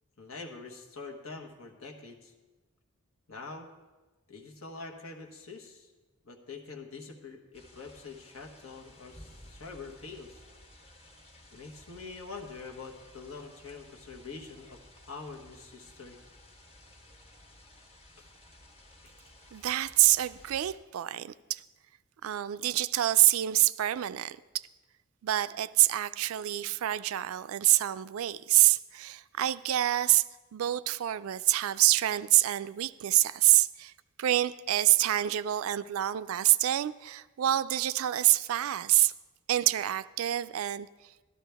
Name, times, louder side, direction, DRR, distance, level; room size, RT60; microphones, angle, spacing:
voice 1, 0.2-2.3 3.3-3.7 4.3-5.9 6.2-10.4 11.5-16.2 18.2-18.3 19.0-19.1, left 4 dB, 80° left, 1.3 m, -45 dB
sound 1, 7.5-20.8, left 1 dB, 30° left, 1.2 m, -55 dB
voice 2, 19.5-21.6 22.2-24.7 25.2-30.2 30.5-33.9 34.2-39.1 39.5-41.1, right 14 dB, 75° right, 0.3 m, -26 dB
13.0 x 12.5 x 3.4 m
head